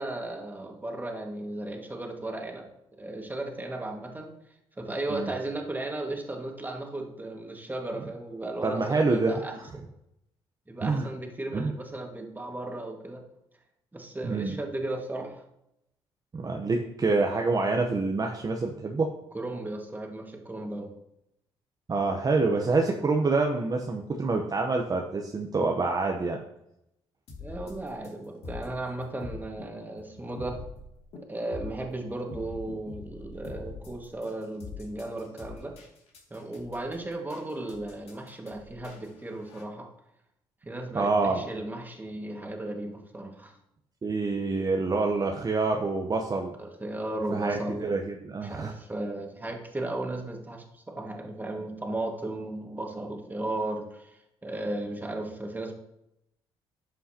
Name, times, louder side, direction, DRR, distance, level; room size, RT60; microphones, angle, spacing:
voice 1, 0.0-2.6 3.0-4.3 4.8-9.5 10.7-13.2 13.9-15.4 19.3-20.9 27.4-30.6 31.3-35.7 36.3-39.9 40.7-43.5 46.6-47.9 48.4-55.7, right 2 dB, 15° right, 1 dB, 1.8 m, -35 dB
voice 2, 8.6-9.4 10.8-11.1 11.5-11.7 14.2-14.5 16.3-19.1 21.9-26.4 40.9-41.4 44.0-46.5 47.3-48.7, right 3 dB, 35° right, 2 dB, 0.9 m, -27 dB
sound 1, 27.3-39.6, left 3 dB, 65° left, 2.3 m, -44 dB
11.5 x 5.6 x 2.9 m, 0.82 s
supercardioid pair, 60°, 11 cm